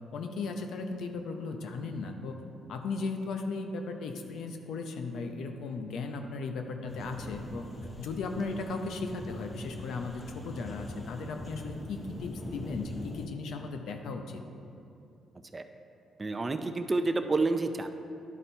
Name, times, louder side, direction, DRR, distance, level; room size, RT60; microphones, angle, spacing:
voice 1, 0.1-2.4 2.7-7.7 8.0-14.4, left 3 dB, 75° left, 5 dB, 0.7 m, -36 dB
sound 1, 6.9-13.3, left 1 dB, 20° left, 0.8 m, -42 dB
voice 2, 16.2-17.9, right 3 dB, 25° right, 8 dB, 0.4 m, -29 dB
11.0 x 4.1 x 4.5 m, 2.7 s
cardioid pair, 90°, 0 cm